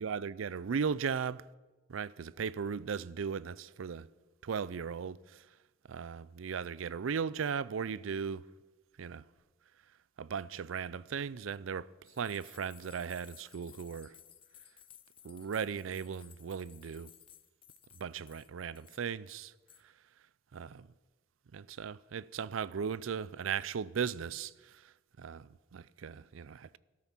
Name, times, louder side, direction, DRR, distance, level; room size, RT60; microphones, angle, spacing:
voice 1, 0.0-1.5 1.9-4.1 4.4-5.5 5.9-8.5 9.0-9.2 10.2-14.2 15.2-17.1 17.9-19.5 19.8-19.9 20.5-20.9 21.5-26.8, right 6 dB, 75° right, 0.4 m, -37 dB
sound 1, 12.0-18.5 18.8-19.0 19.3-19.8, left 10 dB, 25° left, 0.5 m, -58 dB
13.5 x 12.5 x 6.0 m
head